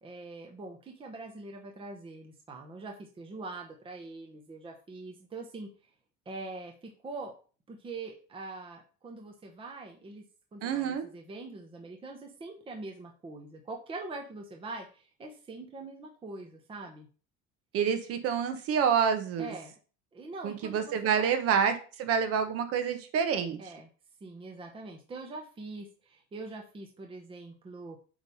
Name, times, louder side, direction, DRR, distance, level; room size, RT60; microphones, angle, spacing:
voice 1, 0.0-5.7 6.3-7.3 7.7-10.2 10.5-17.1 19.4-19.7 20.1-21.3 23.6-23.9 24.2-28.0, right 3 dB, 20° right, 2 dB, 1.0 m, -43 dB
voice 2, 10.6-11.0 17.7-19.5 20.4-23.6, right 7 dB, 50° right, 7 dB, 1.3 m, -28 dB
8.8 x 3.4 x 5.4 m, 0.38 s
cardioid pair, 150°, 29 cm